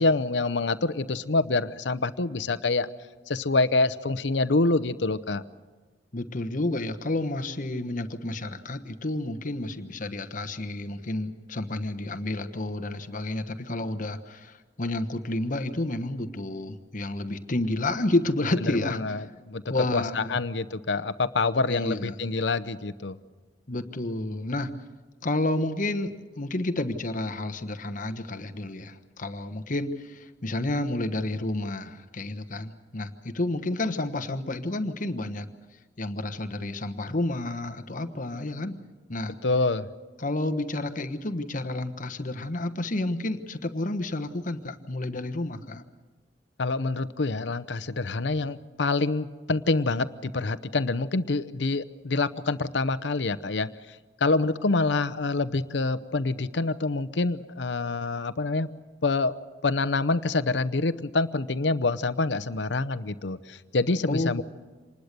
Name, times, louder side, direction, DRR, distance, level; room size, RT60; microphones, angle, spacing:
voice 1, 0.0-2.9 3.3-5.4 18.6-19.6 19.9-23.2 39.4-39.9 46.6-53.7 54.2-58.7 59.0-59.3 59.6-64.4, left 3 dB, 85° left, 14 dB, 0.8 m, -26 dB
voice 2, 6.1-19.0 19.7-20.4 21.7-22.3 23.7-24.7 25.2-35.5 36.0-38.8 39.1-39.3 40.2-45.8 64.1-64.4, left 2 dB, 50° left, 9 dB, 1.2 m, -30 dB
26.5 x 20.0 x 6.8 m, 1.3 s
head